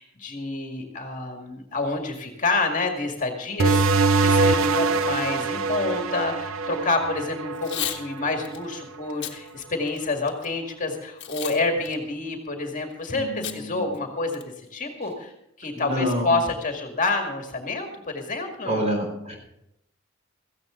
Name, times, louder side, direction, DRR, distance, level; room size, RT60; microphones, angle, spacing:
voice 1, 0.0-14.4 14.7-15.3 15.6-18.8, left 3 dB, 40° left, 3 dB, 2.1 m, -28 dB
sound 1, 3.6-8.8, right 3 dB, 85° right, 0.7 m, -23 dB
Packing tape duct tape / Tearing, 7.5-8.0 8.4-8.6 9.1-9.4 9.9-10.5 11.2-11.6 11.9-12.0 13.4-13.6 13.9-14.0 14.3-14.7, left 11 dB, 60° left, 1.5 m, -32 dB
voice 2, 13.1-13.9 15.7-16.3 18.7-19.3, equal, 35° right, 2 dB, 4.3 m, -28 dB
16.5 x 15.0 x 3.8 m, 0.79 s
head